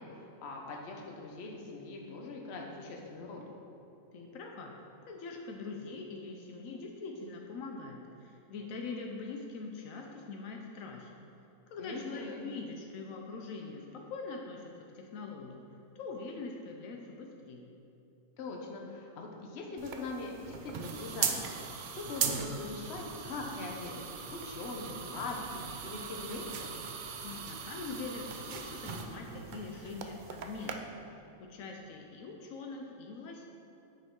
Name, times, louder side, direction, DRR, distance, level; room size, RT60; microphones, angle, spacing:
voice 1, 0.0-3.4 11.8-12.5 18.4-25.4 25.8-26.7, left 3 dB, 55° left, 0 dB, 1.1 m, -42 dB
voice 2, 4.1-4.7 5.0-11.1 11.7-15.6 15.9-17.7 27.2-31.0 31.4-33.5, left 3 dB, 80° left, 1 dB, 1.1 m, -43 dB
sound 1, 19.8-30.7, right 6 dB, 65° right, 0.4 m, -39 dB
9.3 x 5.2 x 3.7 m, 2.8 s
omnidirectional pair, 1.4 m